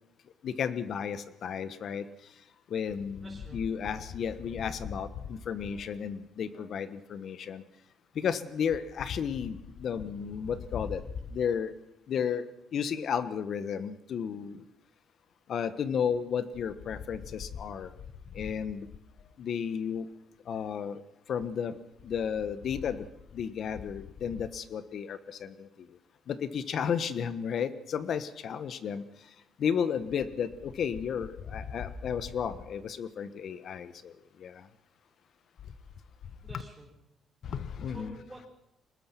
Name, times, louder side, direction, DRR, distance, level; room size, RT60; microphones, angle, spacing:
voice 1, 0.4-2.0 2.7-7.6 8.1-11.0 11.3-11.7 12.1-12.4 12.7-14.6 15.5-17.9 18.4-18.9 19.4-20.0 20.5-21.0 21.3-21.7 22.0-23.0 23.3-25.7 26.3-29.0 29.6-34.1 34.4-34.5 37.5-38.2, left 7 dB, 65° left, 13 dB, 1.3 m, -33 dB
voice 2, 3.2-3.6 36.4-36.9 37.9-38.5, right 1 dB, 10° right, -3 dB, 4.2 m, -49 dB
24.0 x 20.0 x 6.0 m, 0.81 s
cardioid pair, 90°, 0 cm